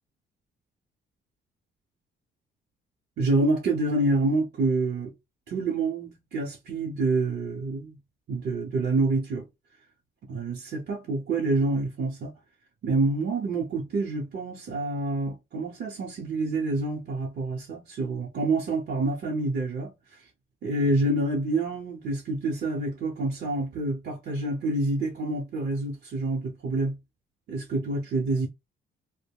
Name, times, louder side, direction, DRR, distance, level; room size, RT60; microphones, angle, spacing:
voice 1, 3.2-5.1 5.5-8.0 8.3-9.5 10.3-12.3 12.8-20.3 20.6-27.0 27.5-28.5, right 2 dB, 55° right, 0.8 m, -27 dB
2.2 x 2.1 x 3.4 m
cardioid pair, 90°, 20 cm